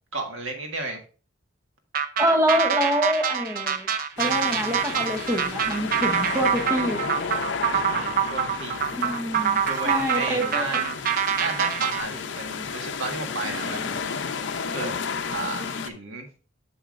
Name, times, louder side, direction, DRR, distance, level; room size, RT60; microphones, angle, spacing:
voice 1, 0.1-1.0 7.7-8.8 9.7-11.0 11.4-14.9 15.3-16.3, right 2 dB, 85° right, 3 dB, 1.6 m, -33 dB
sound 1, 1.9-12.0, right 7 dB, 45° right, 0.6 m, -25 dB
voice 2, 2.2-3.9 4.2-7.1 8.9-10.8, equal, 15° right, 4 dB, 0.8 m, -26 dB
sound 2, 4.2-15.9, left 5 dB, 60° left, 0.6 m, -33 dB
7.2 x 7.1 x 2.5 m, 0.36 s
head